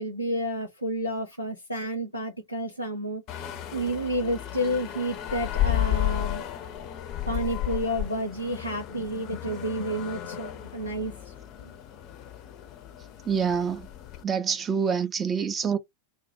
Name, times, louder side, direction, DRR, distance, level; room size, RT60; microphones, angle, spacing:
voice 1, 0.0-3.2 3.7-6.4 7.3-11.3 11.6-11.7, equal, 85° left, 0.5 m, -30 dB
sound 1, 3.3-14.2, left 13 dB, 40° left, 0.4 m, -33 dB
voice 2, 13.3-13.9 14.2-15.8, right 6 dB, 20° right, 0.4 m, -26 dB
2.2 x 2.0 x 2.8 m
figure-of-eight pair, 90°, 0 cm